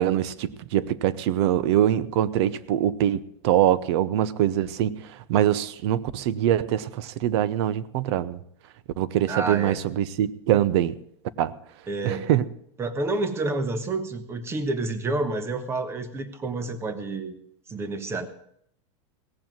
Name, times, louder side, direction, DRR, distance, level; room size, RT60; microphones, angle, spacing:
voice 1, 0.0-5.0 5.3-8.4 9.0-11.0 11.4-11.5 12.0-12.4, right 11 dB, 60° right, 18 dB, 0.8 m, -23 dB
voice 2, 9.3-9.8 11.9-12.3 12.8-17.3 17.7-18.3, right 2 dB, 15° right, 11 dB, 1.1 m, -29 dB
17.5 x 7.3 x 7.6 m, 0.70 s
supercardioid pair, 155°, 16 cm